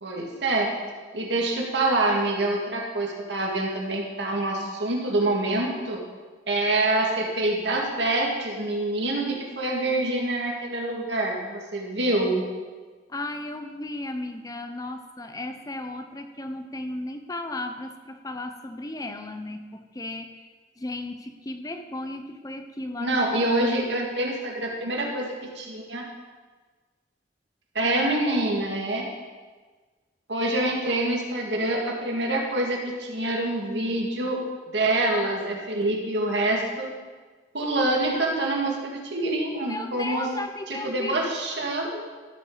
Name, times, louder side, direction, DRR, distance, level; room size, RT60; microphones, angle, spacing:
voice 1, 0.0-0.7 1.1-6.0 6.5-12.4 23.0-26.0 27.7-29.1 30.3-34.4 34.7-36.9 37.5-40.3 40.7-42.0, right 2 dB, 80° right, -1 dB, 2.1 m, -26 dB
voice 2, 13.1-20.4 20.8-23.2 27.8-28.5 39.7-41.2 41.6-41.7, left 2 dB, 20° left, 7 dB, 0.7 m, -35 dB
13.5 x 8.6 x 4.0 m, 1.4 s
head